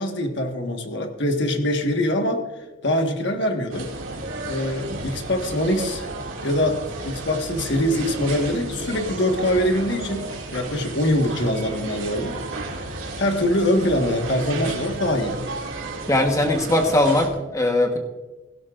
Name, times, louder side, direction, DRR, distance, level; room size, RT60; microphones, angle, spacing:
voice 1, 0.0-2.4 2.8-3.9 4.4-6.1 6.4-12.4 13.2-15.4, left 1 dB, 60° left, 4 dB, 1.5 m, -23 dB
sound 1, 3.7-17.3, right 2 dB, 85° right, 2.4 m, -33 dB
voice 2, 16.1-18.0, left 1 dB, 15° left, 4 dB, 1.2 m, -20 dB
16.5 x 16.5 x 2.5 m, 1.2 s
head